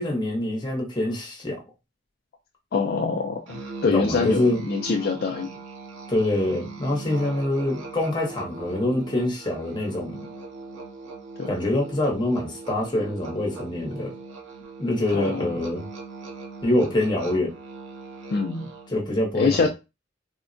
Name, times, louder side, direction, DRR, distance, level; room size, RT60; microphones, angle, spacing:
voice 1, 0.0-1.6 3.8-4.6 6.1-10.3 11.5-14.2 14.8-15.9 16.6-17.5 18.9-19.7, left 1 dB, 25° left, 0.9 m, -25 dB
voice 2, 2.7-5.5 11.4-11.5 15.1-15.5 18.3-18.7 19.3-19.7, left 4 dB, 55° left, 0.3 m, -24 dB
Musical instrument, 3.5-19.0, right 3 dB, 85° right, 0.8 m, -39 dB
3.5 x 2.1 x 2.5 m
head